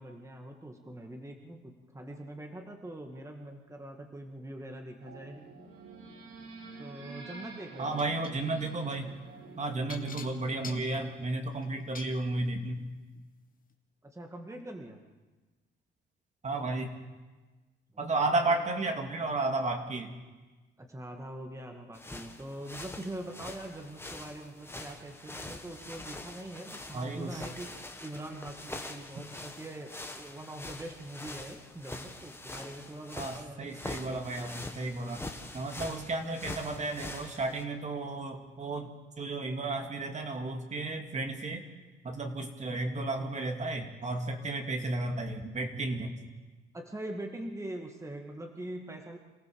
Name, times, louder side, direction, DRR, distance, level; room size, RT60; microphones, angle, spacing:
voice 1, 0.0-5.4 6.8-8.0 14.0-15.0 17.9-18.6 20.8-27.7 28.0-33.7 34.1-34.8 46.7-49.2, right 1 dB, 15° right, 3 dB, 2.2 m, -43 dB
sound 1, 5.0-11.2, right 3 dB, 80° right, 4.8 m, -49 dB
voice 2, 7.8-9.1 9.6-12.9 16.4-16.9 18.0-20.1 26.9-27.4 33.2-35.2 35.5-38.9 39.2-41.6 42.0-46.2, right 2 dB, 35° right, 4 dB, 2.5 m, -33 dB
sound 2, 8.0-8.4 9.9-12.2 13.1-13.3 13.7-13.8, left 5 dB, 45° left, 2.1 m, -46 dB
sound 3, 21.9-37.6, left 2 dB, 10° left, 1.9 m, -44 dB
27.0 x 15.0 x 7.1 m, 1.2 s
cardioid pair, 90°, 20 cm